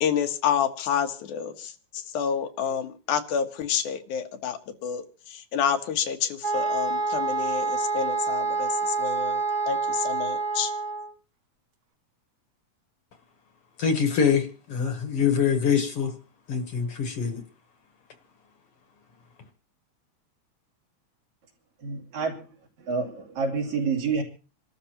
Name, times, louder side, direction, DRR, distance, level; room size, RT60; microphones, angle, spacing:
voice 1, 0.0-10.7, left 8 dB, 90° left, 6 dB, 2.7 m, -29 dB
sound 1, 6.4-11.1, right 3 dB, 45° right, 2.2 m, -27 dB
voice 2, 13.8-16.1 16.5-17.4, left 7 dB, 60° left, 7 dB, 1.8 m, -24 dB
voice 3, 21.8-22.5 22.9-24.2, right 4 dB, 70° right, -2 dB, 4.3 m, -28 dB
27.5 x 13.0 x 2.9 m, 0.36 s
omnidirectional pair, 3.4 m